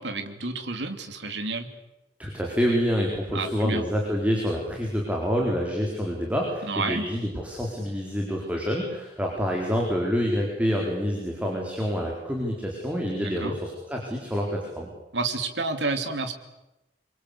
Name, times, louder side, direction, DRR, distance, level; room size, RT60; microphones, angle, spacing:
voice 1, 0.0-1.7 3.3-3.8 6.6-7.0 13.2-13.6 15.1-16.3, right 3 dB, 80° right, 7 dB, 2.9 m, -30 dB
voice 2, 2.2-14.9, equal, 10° right, -1 dB, 4.5 m, -27 dB
27.0 x 23.0 x 8.6 m, 0.93 s
head